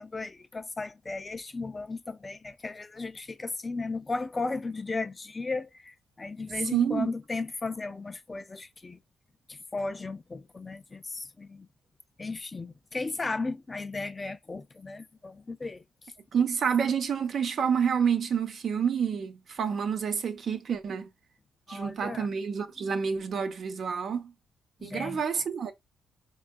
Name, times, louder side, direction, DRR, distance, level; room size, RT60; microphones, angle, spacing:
voice 1, 0.0-9.0 9.5-11.7 12.2-15.8 21.7-22.3 22.8-22.9 24.8-25.2, left 3 dB, 25° left, 0.4 m, -35 dB
voice 2, 6.7-7.1 16.3-21.1 21.7-24.3 24.8-25.7, right 7 dB, 55° right, 0.7 m, -28 dB
4.3 x 2.3 x 2.2 m
cardioid pair, 80°, 0 cm